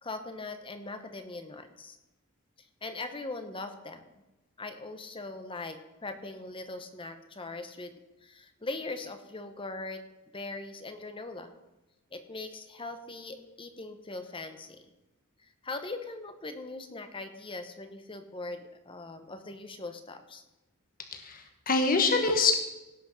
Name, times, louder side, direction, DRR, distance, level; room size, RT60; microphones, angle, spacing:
voice 1, 0.0-2.0 2.8-4.0 4.6-7.9 8.2-10.0 10.3-11.5 12.1-14.8 15.4-20.4, left 3 dB, 25° left, 8 dB, 0.9 m, -40 dB
voice 2, 21.1-22.6, left 4 dB, 40° left, 5 dB, 1.3 m, -25 dB
17.0 x 6.1 x 6.2 m, 1.0 s
head